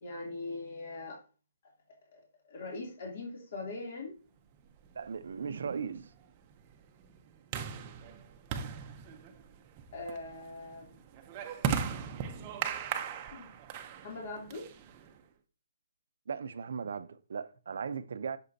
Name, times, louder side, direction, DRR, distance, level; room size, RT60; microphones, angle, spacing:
voice 1, 0.0-1.2 2.1-2.2 2.5-4.1 9.9-10.9 12.4-12.5 13.3-13.5 14.0-14.7, left 2 dB, 50° left, 2.9 m, -41 dB
sound 1, 4.8-15.2, right 7 dB, 25° right, 0.7 m, -38 dB
voice 2, 5.0-6.1 16.3-18.4, right 6 dB, 70° right, 0.6 m, -37 dB
8.2 x 6.9 x 2.8 m
hypercardioid pair, 165°, 0 cm